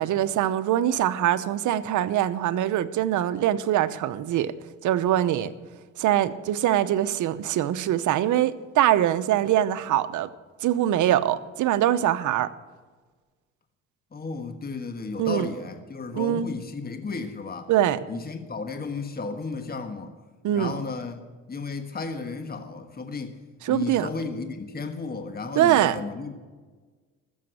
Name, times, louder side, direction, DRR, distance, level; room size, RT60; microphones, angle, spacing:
voice 1, 0.0-4.5 4.8-5.5 6.0-10.3 10.6-12.5 15.2-15.5 16.1-16.5 17.7-18.0 20.4-20.7 23.7-24.1 25.6-26.0, right 12 dB, 80° right, 12 dB, 0.9 m, -23 dB
voice 2, 14.1-17.7 18.1-20.1 20.5-21.2 21.5-23.4 23.7-26.3, left 4 dB, 30° left, 7 dB, 1.5 m, -34 dB
14.0 x 7.1 x 9.7 m, 1.4 s
cardioid pair, 90°, 30 cm